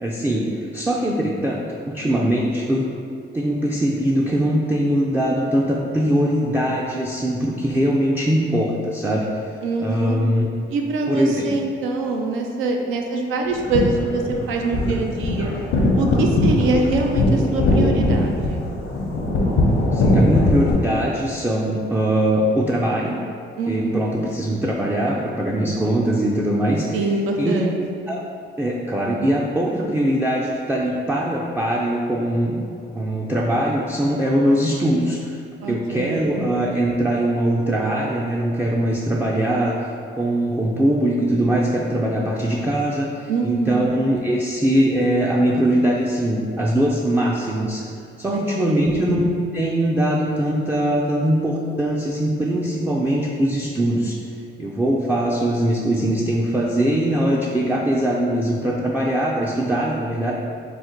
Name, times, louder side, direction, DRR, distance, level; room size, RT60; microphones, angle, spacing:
voice 1, 0.0-2.9 3.3-9.3 9.8-10.5 11.1-11.5 19.9-23.2 23.7-27.6 28.1-28.2 28.6-32.6 32.9-35.4 35.7-39.8 40.1-47.8 48.2-49.3 49.5-54.2 54.6-60.3, right 1 dB, 10° right, -3 dB, 0.3 m, -21 dB
voice 2, 9.6-10.2 10.7-14.2 14.5-15.5 15.9-18.6 23.6-24.1 26.9-27.8 35.6-36.4 43.3-43.9 48.3-49.1, right 3 dB, 90° right, 2 dB, 0.5 m, -24 dB
sound 1, 13.5-20.7, left 1 dB, 80° left, 0.8 m, -20 dB
3.8 x 2.1 x 4.3 m, 2.3 s
cardioid pair, 90°, 20 cm